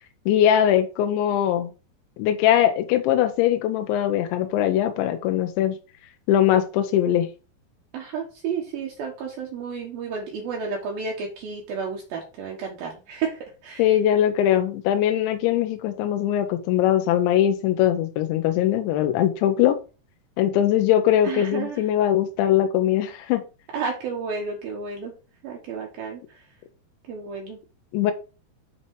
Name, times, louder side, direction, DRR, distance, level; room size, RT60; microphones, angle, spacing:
voice 1, 0.3-1.7 2.2-5.8 6.3-7.3 13.8-19.8 20.4-23.4 27.9-28.1, left 11 dB, 90° left, 7 dB, 3.2 m, -21 dB
voice 2, 7.9-13.4 13.6-13.8 21.2-21.8 23.7-25.1 25.4-26.2 27.1-27.6, right 5 dB, 65° right, -1 dB, 2.7 m, -31 dB
7.7 x 4.4 x 4.7 m, 0.34 s
omnidirectional pair, 5.1 m